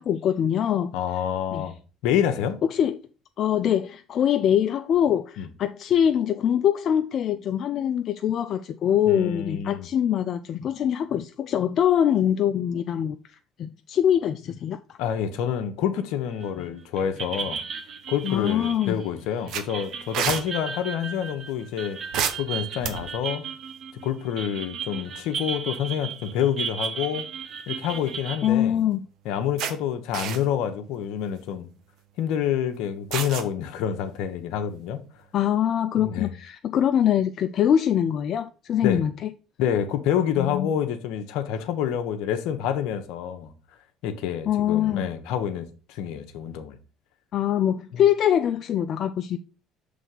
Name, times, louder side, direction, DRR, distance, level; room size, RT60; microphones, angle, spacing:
voice 1, 0.0-1.0 1.5-1.6 2.7-3.0 3.4-13.2 13.6-15.0 18.2-19.0 28.4-29.0 35.3-39.3 40.4-40.7 44.5-45.0 47.3-49.4, left 10 dB, 55° left, 0.4 m, -23 dB
voice 2, 0.9-1.8 2.0-2.6 5.4-5.5 9.1-9.9 15.0-17.6 18.1-22.0 22.4-23.5 24.0-27.3 27.7-28.8 29.2-31.7 32.2-35.0 36.0-36.3 38.8-39.0 39.6-43.5 44.0-46.8 47.9-48.0, left 9 dB, 75° left, 0.9 m, -27 dB
sound 1, 16.4-16.7 17.0-28.5, right 6 dB, 50° right, 1.1 m, -35 dB
sound 2, 18.2-18.6 19.0-19.1 19.5-20.4 22.1-23.3 24.9-25.1 25.5-25.6 27.6-28.2 28.8-28.9 29.6-29.7 30.1-30.6 31.2-31.4 33.1-33.5, right 8 dB, 65° right, 0.9 m, -29 dB
6.2 x 3.4 x 5.5 m
supercardioid pair, 85°, 0 cm